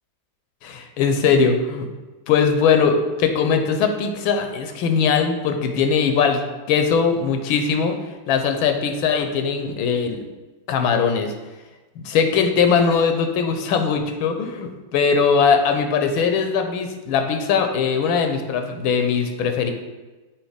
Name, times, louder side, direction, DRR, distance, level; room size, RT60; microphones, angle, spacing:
voice 1, 0.6-1.9 2.3-6.4 6.7-8.0 8.3-10.2 10.7-11.3 12.0-19.7, left 6 dB, 80° left, 6 dB, 1.4 m, -20 dB
7.2 x 2.9 x 4.9 m, 1.2 s
omnidirectional pair, 2.2 m